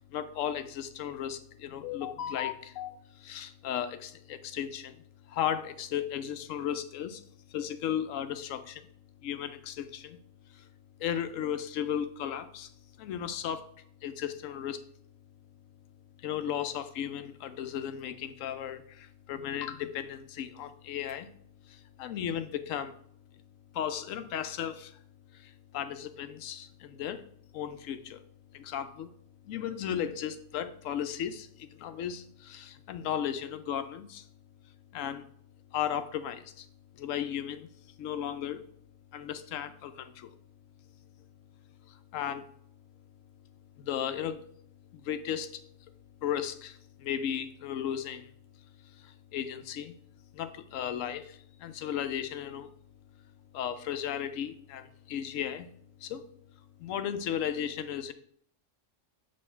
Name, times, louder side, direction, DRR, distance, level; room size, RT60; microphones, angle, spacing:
voice 1, 0.0-5.0 5.3-7.2 7.5-8.8 9.2-10.2 10.5-10.7 11.0-12.7 13.0-13.7 14.0-14.8 16.2-21.3 21.7-22.9 23.7-25.0 25.3-27.2 27.5-28.2 28.5-29.1 29.4-34.3 34.9-35.3 35.7-36.7 36.9-37.7 38.0-38.7 39.1-40.3 41.9-42.5 43.8-44.5 44.9-45.6 46.2-48.3 49.0-49.9 50.3-52.7 53.5-55.7 56.0-56.2 56.8-58.1, left 9 dB, 85° left, 11 dB, 1.0 m, -35 dB
6.5 x 3.1 x 5.5 m, 0.63 s
omnidirectional pair, 1.3 m